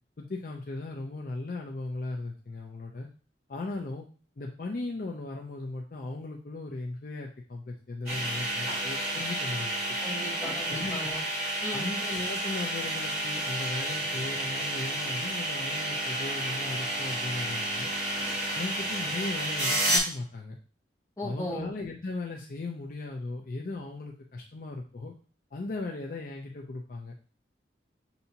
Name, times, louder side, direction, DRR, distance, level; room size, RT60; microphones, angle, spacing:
voice 1, 0.2-3.1 3.5-4.1 4.4-9.8 10.7-11.2 11.7-17.9 18.5-20.6 21.2-25.1 25.5-27.1, left 2 dB, 50° left, 0 dB, 0.5 m, -37 dB
sound 1, 8.1-20.0, right 1 dB, 15° right, 2.1 m, -31 dB
voice 2, 10.0-11.2 11.6-11.9 21.2-21.7, left 1 dB, 20° left, -4 dB, 1.2 m, -36 dB
6.8 x 2.8 x 2.8 m, 0.38 s
head